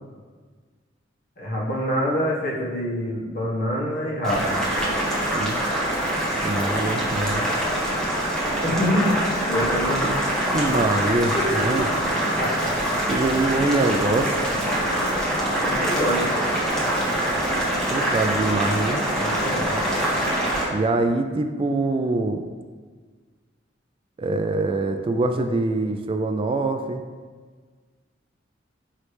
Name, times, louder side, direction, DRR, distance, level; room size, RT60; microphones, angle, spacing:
voice 1, 1.4-4.5 8.6-9.1 9.5-10.1 11.3-11.9 12.3-13.0 14.5-15.1 15.5-16.3 19.2-19.8, equal, 50° left, -4 dB, 1.4 m, -26 dB
Boiling, 4.2-20.7, right 1 dB, 5° left, 1.3 m, -24 dB
voice 2, 5.3-5.7 6.4-7.5 10.0-10.2 10.5-11.8 13.1-14.4 17.9-19.0 20.7-22.4 24.2-27.0, right 2 dB, 30° right, 6 dB, 0.3 m, -24 dB
9.4 x 3.1 x 3.3 m, 1.5 s
head